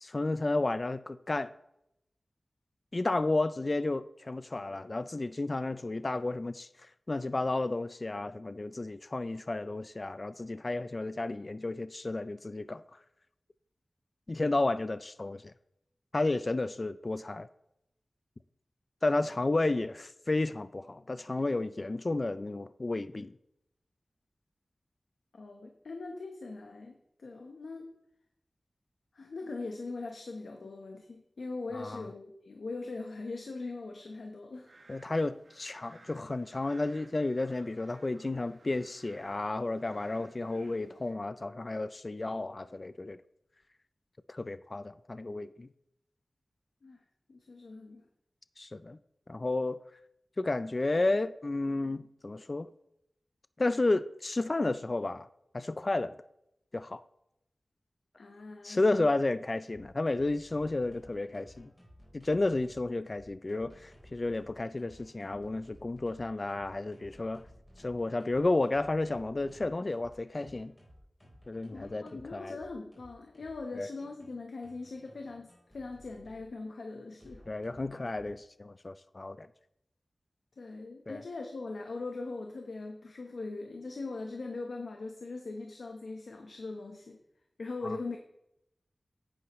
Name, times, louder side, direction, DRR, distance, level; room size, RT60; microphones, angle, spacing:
voice 1, 0.0-1.5 2.9-6.7 7.1-12.8 14.3-15.5 16.1-17.5 19.0-23.3 31.7-32.1 34.9-43.2 44.3-45.7 48.6-49.0 49.3-49.8 50.4-52.7 53.6-55.3 55.5-56.2 56.7-57.0 58.6-61.7 62.1-67.4 67.8-70.7 71.5-72.5 73.8-73.9 77.5-79.5 81.1-81.2 87.8-88.0, left 2 dB, 40° left, 0.3 m, -32 dB
voice 2, 25.3-27.9 29.1-34.7 46.8-47.0 47.3-48.0 58.2-59.1 71.7-77.4 80.6-87.2 87.6-88.2, left 3 dB, 85° left, 1.0 m, -41 dB
sound 1, 34.5-41.1, right 2 dB, 65° right, 1.3 m, -59 dB
sound 2, 59.6-76.5 77.2-78.4, equal, 15° left, 3.9 m, -57 dB
9.9 x 9.7 x 3.1 m
wide cardioid pair, 90°, 0 cm